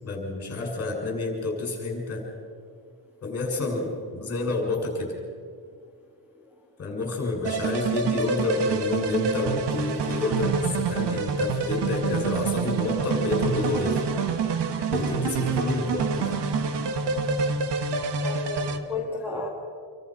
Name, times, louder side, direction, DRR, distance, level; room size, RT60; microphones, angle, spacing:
voice 1, 0.0-2.2 3.2-5.1 6.8-14.0 14.8-16.3, left 3 dB, 35° left, 1 dB, 6.9 m, -29 dB
sound 1, 7.4-18.8, right 5 dB, 65° right, 1.8 m, -27 dB
voice 2, 15.6-15.9 18.2-19.5, left 2 dB, 5° right, -1 dB, 2.3 m, -34 dB
27.5 x 24.0 x 6.1 m, 2.2 s
cardioid pair, 165°, 44 cm